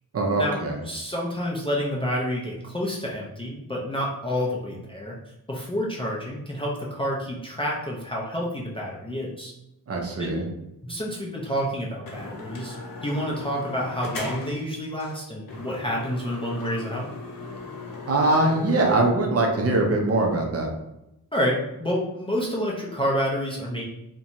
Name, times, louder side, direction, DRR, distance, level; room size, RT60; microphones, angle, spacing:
voice 1, 0.1-0.8 9.9-10.4 18.1-20.7, right 2 dB, 40° right, 0 dB, 0.5 m, -22 dB
voice 2, 0.8-5.2 5.5-9.5 10.2-10.4 10.8-17.1 21.3-23.8, equal, 15° left, -4 dB, 0.4 m, -29 dB
sound 1, 11.6-11.7 12.1-14.6 15.0-15.2 15.5-19.1, left 3 dB, 65° left, 0.7 m, -37 dB
2.5 x 2.1 x 2.8 m, 0.87 s
wide cardioid pair, 130°, 37 cm